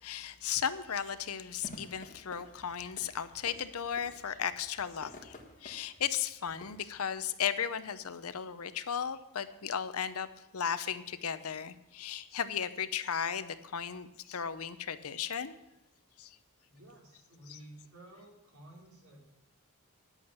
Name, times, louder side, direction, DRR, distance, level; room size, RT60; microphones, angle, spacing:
voice 1, 0.0-10.3 10.5-15.5 16.2-16.4 17.5-17.6, left 8 dB, 70° left, 13 dB, 0.7 m, -35 dB
sound 1, 1.6-6.9, left 1 dB, 35° left, 1.6 m, -53 dB
voice 2, 16.7-19.2, right 1 dB, 70° right, -3 dB, 4.6 m, -53 dB
10.5 x 8.3 x 6.9 m, 0.94 s
head